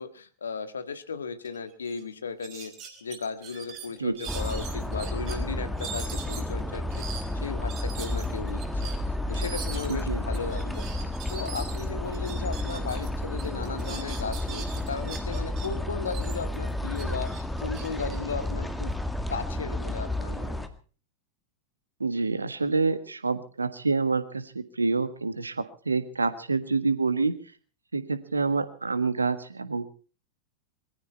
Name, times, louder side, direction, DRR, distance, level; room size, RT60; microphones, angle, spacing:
voice 1, 0.0-2.7 3.0-19.0 19.3-20.7, left 5 dB, 70° left, 11 dB, 1.7 m, -36 dB
sound 1, 1.4-1.6 1.8-2.0 2.4-5.4 5.8-13.1 13.4-15.7 16.1-18.9, right 7 dB, 35° right, 4.5 m, -42 dB
sound 2, 4.3-20.7, left 1 dB, 5° left, 1.9 m, -31 dB
voice 2, 9.9-10.2 22.0-27.3 27.9-29.9, right 4 dB, 80° right, 13 dB, 1.5 m, -27 dB
22.5 x 15.0 x 4.3 m, 0.39 s
figure-of-eight pair, 90°, 0 cm